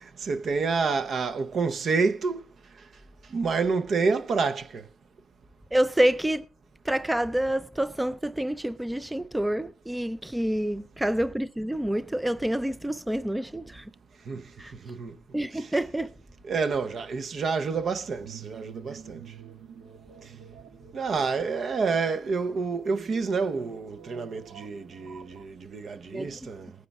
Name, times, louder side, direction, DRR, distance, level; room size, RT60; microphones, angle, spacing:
voice 1, 0.0-2.4 3.3-4.8 14.3-14.4 14.8-15.1 15.6-15.7 16.4-19.2 20.9-26.7, right 4 dB, 50° right, 0.7 m, -28 dB
voice 2, 5.7-6.4 6.9-13.8 14.6-14.7 15.3-16.1 26.1-26.3, right 1 dB, 10° right, 0.4 m, -27 dB
sound 1, 17.8-25.5, right 7 dB, 75° right, 1.5 m, -48 dB
19.5 x 9.4 x 2.3 m
cardioid pair, 90°, 0 cm